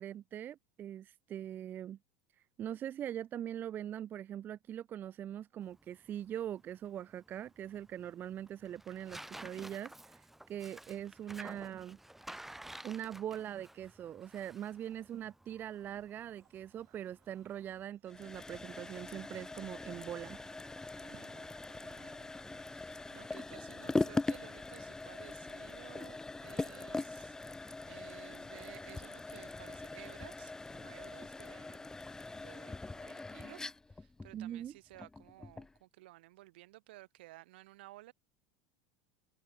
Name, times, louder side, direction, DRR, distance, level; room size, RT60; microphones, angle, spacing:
voice 1, 0.0-2.0 2.6-12.0 12.8-20.4 34.3-34.7, right 10 dB, 35° right, 0.5 m, -42 dB
Tearing, 5.6-17.8, right 1 dB, 5° right, 2.5 m, -53 dB
sound 1, 16.4-24.2, right 19 dB, 55° right, 2.6 m, -66 dB
sound 2, 18.1-35.8, left 3 dB, 10° left, 1.1 m, -41 dB
voice 2, 21.0-22.3 22.7-31.9 32.3-38.1, right 18 dB, 80° right, 4.2 m, -56 dB
open air
supercardioid pair, 105°, 6 cm